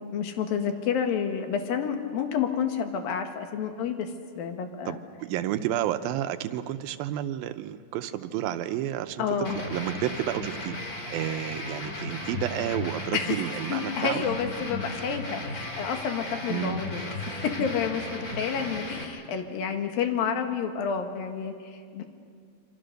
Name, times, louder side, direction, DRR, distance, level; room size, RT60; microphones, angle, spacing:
voice 1, 0.0-4.1 4.4-5.0 9.2-9.6 13.1-17.0 17.3-22.1, left 7 dB, 80° left, 5 dB, 3.3 m, -30 dB
voice 2, 4.9-9.2 9.6-10.8 11.1-14.2 16.5-17.0, right 12 dB, 85° right, 9 dB, 2.6 m, -31 dB
sound 1, 9.4-19.0, left 1 dB, 30° left, 2.2 m, -35 dB
27.0 x 25.0 x 6.6 m, 2.2 s
omnidirectional pair, 4.1 m